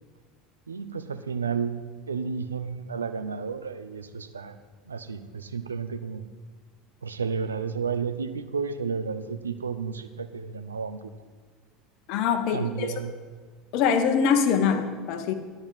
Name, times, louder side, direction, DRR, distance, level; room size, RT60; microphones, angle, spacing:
voice 1, 0.7-4.6 4.9-6.2 7.0-11.1 12.5-13.1, right 6 dB, 80° right, 10 dB, 0.6 m, -32 dB
voice 2, 12.1-12.9 13.7-15.3, left 6 dB, 55° left, 8 dB, 1.1 m, -23 dB
11.0 x 6.2 x 7.7 m, 1.5 s
figure-of-eight pair, 70°, 0 cm